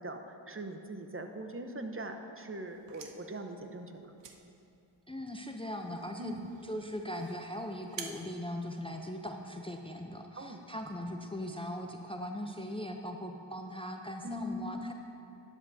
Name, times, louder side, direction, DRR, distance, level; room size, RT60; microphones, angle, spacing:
voice 1, 0.0-4.1 6.2-6.5 10.4-10.6 14.2-14.9, right 1 dB, 30° right, 5 dB, 0.8 m, -41 dB
sound 1, 2.6-9.5, right 6 dB, 65° right, 0.9 m, -51 dB
voice 2, 5.1-14.9, equal, 10° left, 3 dB, 0.6 m, -40 dB
11.5 x 9.9 x 2.7 m, 2.7 s
cardioid pair, 50°, 46 cm